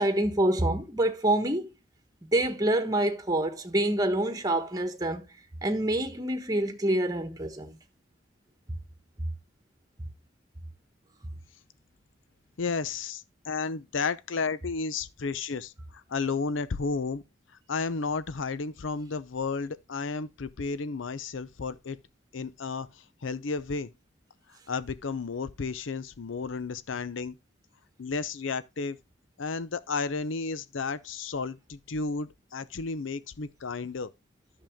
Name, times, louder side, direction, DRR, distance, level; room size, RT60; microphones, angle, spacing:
voice 1, 0.0-1.7 2.3-5.3 5.6-7.8, right 1 dB, 20° right, 1.3 m, -26 dB
voice 2, 12.6-17.2 17.7-22.0 22.3-23.9 24.7-27.3 28.0-29.0 29.4-34.1, left 4 dB, 80° left, 0.6 m, -32 dB
10.5 x 6.7 x 3.6 m
head